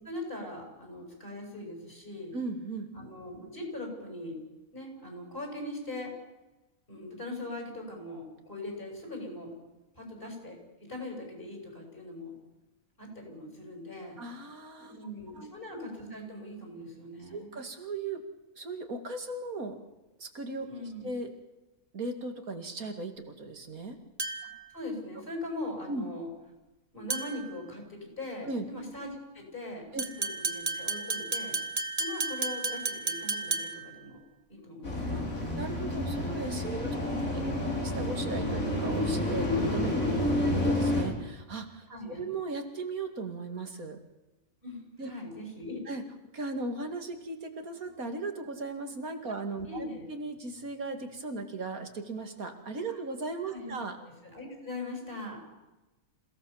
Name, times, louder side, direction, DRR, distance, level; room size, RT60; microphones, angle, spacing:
voice 1, 0.0-2.4 2.9-4.4 4.7-6.2 6.9-9.5 10.0-12.3 13.0-14.2 14.8-17.6 20.7-21.1 24.7-26.3 26.9-31.6 32.0-34.2 34.5-35.5 40.0-40.5 41.9-42.3 44.6-45.8 49.7-50.0 52.9-53.0 53.4-53.7 54.0-55.4, left 1 dB, 40° left, 1 dB, 8.0 m, -41 dB
voice 2, 2.3-2.9 14.2-15.0 15.3-15.5 17.3-18.2 18.6-19.8 20.2-21.3 21.9-24.0 25.9-26.1 28.4-28.6 29.9-30.0 35.1-35.2 35.6-37.0 37.3-37.4 37.8-39.9 40.5-41.9 42.2-44.0 45.0-45.1 45.9-46.0 46.3-54.0, right 3 dB, 90° right, 5 dB, 2.8 m, -37 dB
sound 1, 24.2-24.6 27.1-27.5 30.0-33.9, right 3 dB, 25° right, 1.7 m, -33 dB
sound 2, 34.8-41.0, left 1 dB, 75° left, 6.3 m, -29 dB
27.5 x 17.5 x 7.3 m, 1.1 s
omnidirectional pair, 1.4 m